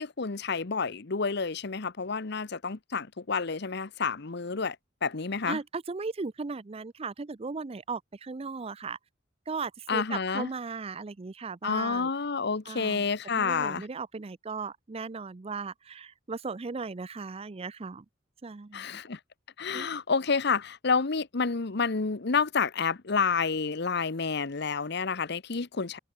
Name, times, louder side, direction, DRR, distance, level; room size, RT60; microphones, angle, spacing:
voice 1, 0.0-4.8 5.0-5.6 9.9-10.5 11.6-13.9 18.7-19.2 19.6-26.0, left 5 dB, 60° left, 1.0 m, -29 dB
voice 2, 5.4-9.0 9.5-12.1 12.7-13.1 13.3-18.0 18.4-19.0 19.7-19.9, right 4 dB, 30° right, 0.5 m, -37 dB
head